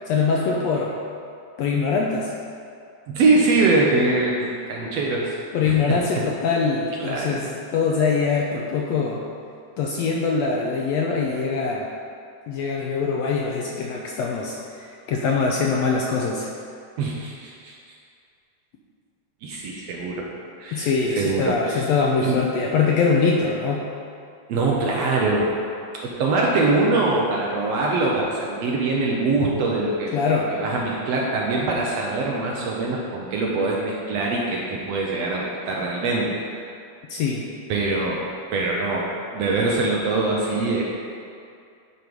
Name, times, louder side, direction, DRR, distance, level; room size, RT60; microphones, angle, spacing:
voice 1, 0.1-0.9 1.6-2.3 5.5-9.2 9.8-11.9 12.5-16.5 20.7-23.8 30.1-30.5 37.1-37.5, left 5 dB, 80° left, -1 dB, 1.6 m, -23 dB
voice 2, 3.1-6.0 7.0-7.4 17.0-17.7 19.4-20.3 20.6-21.8 22.2-22.4 24.5-25.5 26.0-30.1 30.5-36.5 37.7-39.1 39.3-40.8, right 3 dB, 70° right, -2 dB, 1.6 m, -23 dB
9.8 x 4.6 x 5.1 m, 2.5 s
omnidirectional pair, 3.5 m